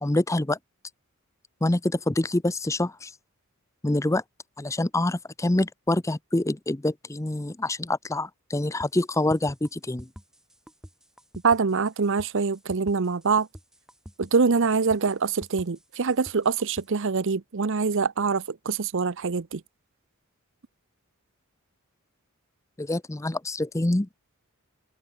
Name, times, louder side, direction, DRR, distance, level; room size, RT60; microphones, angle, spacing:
voice 1, 0.0-0.6 1.6-3.1 3.8-4.2 4.6-10.1 22.8-24.1, left 1 dB, 15° left, 0.6 m, -26 dB
sound 1, 8.8-16.9, equal, 5° right, 5.1 m, -47 dB
voice 2, 11.4-13.5 14.2-19.6, right 5 dB, 60° right, 0.7 m, -24 dB
head